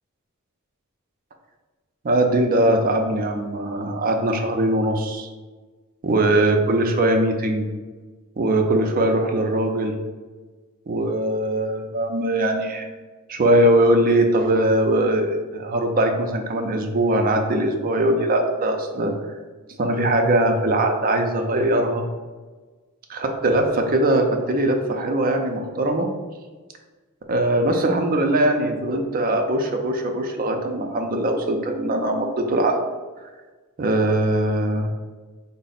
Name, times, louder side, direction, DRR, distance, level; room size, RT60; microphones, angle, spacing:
voice 1, 2.0-5.3 6.0-7.7 8.4-10.0 10.9-12.9 13.3-19.1 19.8-22.0 23.1-26.1 27.3-32.8 33.8-34.9, right 1 dB, 45° right, 3 dB, 0.5 m, -21 dB
3.8 x 2.0 x 4.0 m, 1.3 s
head